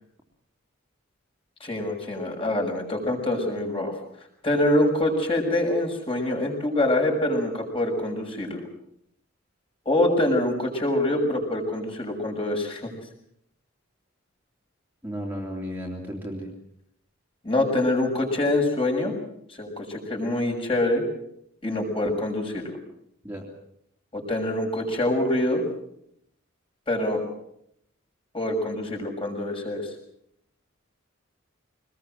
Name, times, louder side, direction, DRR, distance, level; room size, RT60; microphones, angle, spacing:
voice 1, 1.6-3.9 4.4-8.7 9.8-12.9 17.4-19.1 19.5-21.0 21.6-22.8 24.1-25.6 26.9-27.2 28.3-29.9, left 1 dB, 25° left, 2 dB, 6.4 m, -25 dB
voice 2, 15.0-16.5 23.2-23.4, equal, 10° right, -2 dB, 3.2 m, -33 dB
25.0 x 20.5 x 7.7 m, 0.75 s
head